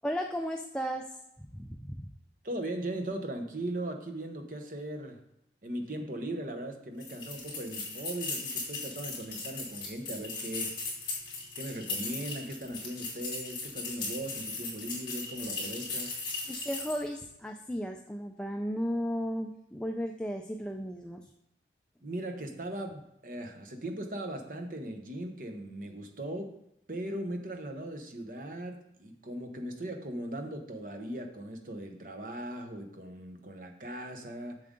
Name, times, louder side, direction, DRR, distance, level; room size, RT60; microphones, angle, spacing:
voice 1, 0.0-2.1 16.5-21.3, equal, 5° left, 3 dB, 0.3 m, -35 dB
voice 2, 2.4-5.2 5.6-10.8 11.6-16.2 22.0-26.5 26.9-34.6, right 1 dB, 50° right, 5 dB, 1.0 m, -38 dB
sound 1, 7.0-17.1, left 3 dB, 30° left, 2.7 m, -38 dB
7.3 x 6.7 x 3.7 m, 0.80 s
head